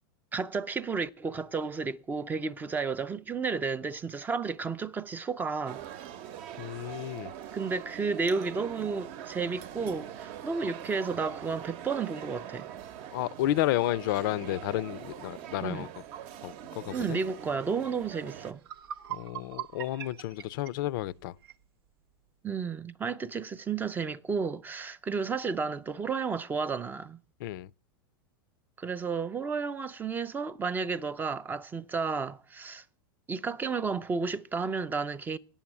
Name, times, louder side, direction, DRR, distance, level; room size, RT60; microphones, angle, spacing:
voice 1, 0.3-5.8 7.5-12.7 15.6-15.9 16.9-18.6 22.4-27.2 28.8-32.8 33.3-35.4, right 5 dB, 15° right, 0.4 m, -32 dB
sound 1, 5.7-18.5, right 10 dB, 50° right, 0.8 m, -43 dB
voice 2, 6.6-7.3 13.1-15.9 16.4-17.2 19.1-21.3 27.4-27.7, left 15 dB, 65° left, 0.5 m, -31 dB
sound 2, 18.5-21.6, right 11 dB, 80° right, 0.7 m, -41 dB
8.9 x 7.1 x 8.7 m
supercardioid pair, 130°, 12 cm